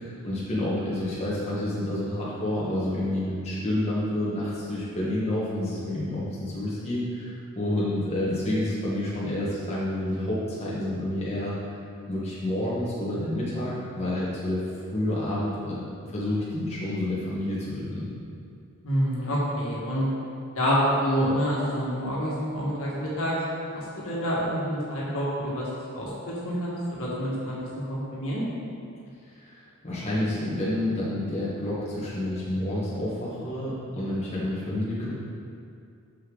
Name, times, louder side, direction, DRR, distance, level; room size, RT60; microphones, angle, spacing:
voice 1, 0.0-11.6 12.1-14.6 14.9-15.8 16.1-18.1 29.3-35.1, left 1 dB, 30° left, -8 dB, 1.4 m, -29 dB
voice 2, 18.8-20.1 20.5-23.3 23.7-25.7 25.9-27.6 27.9-28.4, equal, 65° left, -6 dB, 1.8 m, -27 dB
6.6 x 6.6 x 3.9 m, 2.4 s
head